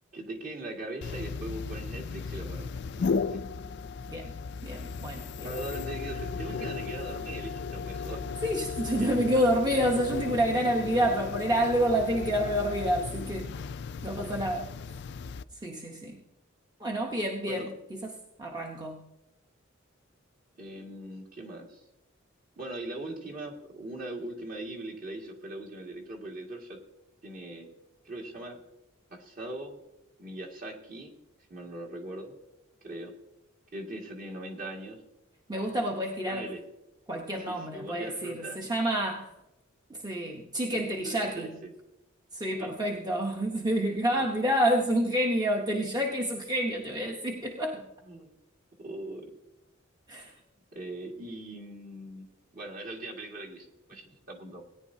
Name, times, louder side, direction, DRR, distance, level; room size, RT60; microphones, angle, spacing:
voice 1, 0.1-2.7 2.9-3.4 5.4-8.2 8.9-9.2 17.5-17.7 20.6-21.8 22.6-26.8 27.2-27.7 28.0-28.6 29.1-29.8 30.2-31.1 31.5-32.3 32.8-33.1 33.7-35.0 36.3-36.6 37.4-38.6 40.7-41.7 42.6-42.7 43.9-44.3 48.1-48.3 48.8-49.3 50.7-52.3 52.5-54.6, right 1 dB, 40° right, 0 dB, 1.9 m, -40 dB
sound 1, 1.0-15.4, left 5 dB, 55° left, 0.3 m, -35 dB
voice 2, 4.6-5.5 8.4-13.5 14.0-14.7 15.6-16.2 16.8-17.7 18.0-18.1 18.4-19.0 35.5-36.5 37.1-39.3 39.9-41.5 42.3-47.8 50.1-50.3, equal, 20° right, 0 dB, 0.9 m, -28 dB
17.5 x 10.0 x 2.7 m, 0.91 s
head